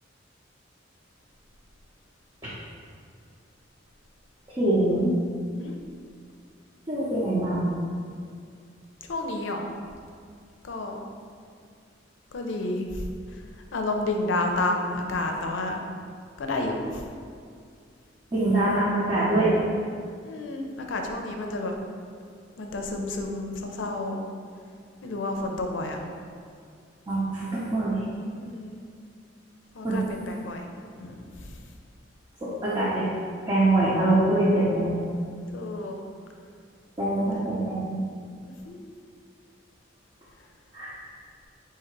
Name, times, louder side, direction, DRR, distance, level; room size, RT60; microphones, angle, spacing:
voice 1, 4.6-5.1 6.9-7.6 18.3-19.5 27.1-28.0 29.8-30.0 32.4-33.1 33.5-35.0 37.0-38.0 40.7-40.9, right 2 dB, 25° right, -9 dB, 0.7 m, -24 dB
voice 2, 9.1-9.7 10.6-11.1 12.3-13.4 13.7-15.8 16.4-17.0 20.2-21.7 22.6-24.2 25.0-26.0 28.3-28.8 29.7-30.7 30.9-31.6 35.5-36.0 37.3-37.4 38.7-38.9, left 2 dB, 85° left, 3 dB, 0.5 m, -30 dB
3.8 x 2.8 x 4.5 m, 2.2 s
head